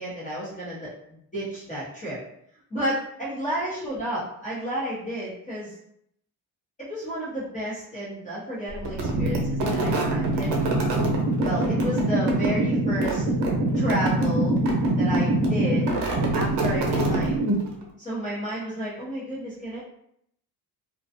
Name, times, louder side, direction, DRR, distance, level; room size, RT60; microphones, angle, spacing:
voice 1, 0.0-2.2 2.7-5.7 6.8-10.6 11.4-13.2 13.7-14.6 15.0-15.9 16.3-17.4 18.0-19.8, equal, 20° left, -9 dB, 0.8 m, -31 dB
sound 1, 8.8-17.8, right 1 dB, 90° right, 0.7 m, -24 dB
2.4 x 2.3 x 2.5 m, 0.71 s
cardioid pair, 180°, 40 cm